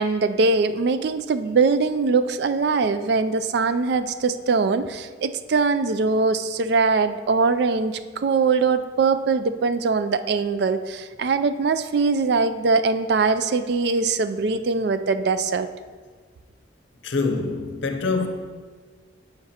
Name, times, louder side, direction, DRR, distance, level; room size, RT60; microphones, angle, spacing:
voice 1, 0.0-15.7, right 4 dB, 60° right, 0.4 m, -22 dB
voice 2, 17.0-18.3, left 3 dB, 80° left, 0.7 m, -25 dB
9.8 x 5.9 x 2.8 m
head